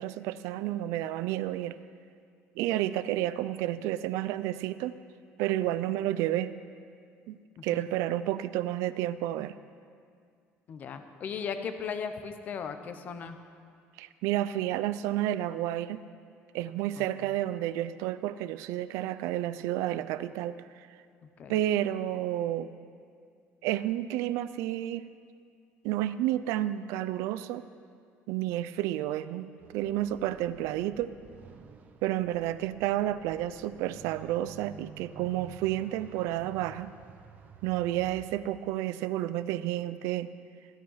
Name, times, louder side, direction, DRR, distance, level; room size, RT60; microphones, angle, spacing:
voice 1, 0.0-1.8 2.6-4.9 5.4-6.5 7.3-9.5 14.0-16.0 16.5-20.9 21.5-22.7 23.6-25.1 25.8-27.6 28.3-31.1 32.0-36.9 37.6-40.3, right 13 dB, 85° right, 14 dB, 0.5 m, -31 dB
voice 2, 7.6-7.9 10.7-13.4 17.0-17.3 21.4-21.5, left 6 dB, 35° left, 8 dB, 0.9 m, -37 dB
sound 1, 29.6-38.4, right 6 dB, 35° right, 0.8 m, -51 dB
15.5 x 12.5 x 5.6 m, 2.2 s
cardioid pair, 175°, 5 cm